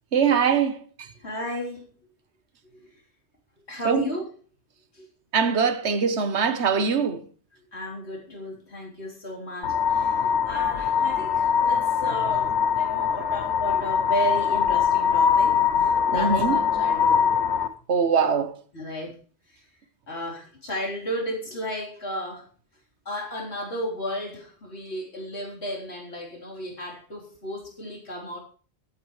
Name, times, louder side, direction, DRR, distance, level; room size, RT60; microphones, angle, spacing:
voice 1, 0.1-0.8 3.9-4.0 5.3-7.2 16.1-16.6 17.9-18.5, right 6 dB, 90° right, 1.5 m, -22 dB
voice 2, 1.2-1.9 2.6-3.0 3.7-4.3 4.9-5.1 7.5-17.3 18.7-19.2 19.5-19.6 20.1-22.5 23.1-28.4, equal, 75° left, 4.1 m, -34 dB
sound 1, 9.6-17.7, left 7 dB, 90° left, 1.2 m, -22 dB
21.0 x 9.4 x 3.2 m
omnidirectional pair, 1.1 m